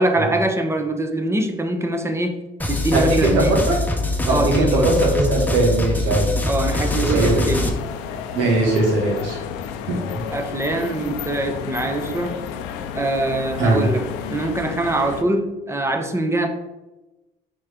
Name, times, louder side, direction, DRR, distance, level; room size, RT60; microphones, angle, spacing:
voice 1, 0.0-2.4 2.7-3.5 4.3-4.9 6.4-7.7 10.3-12.4 12.9-16.5, right 2 dB, 15° right, 5 dB, 1.0 m, -23 dB
sound 1, 2.6-7.7, left 2 dB, 10° left, 1.0 m, -23 dB
voice 2, 2.9-3.8 4.2-6.3 7.0-7.4 8.3-9.4 9.9-10.2 13.6-13.8, right 2 dB, 80° right, -1 dB, 2.0 m, -20 dB
sound 2, 6.6-15.2, left 7 dB, 85° left, 0.6 m, -32 dB
6.3 x 4.6 x 3.7 m, 1.0 s
supercardioid pair, 85°, 18 cm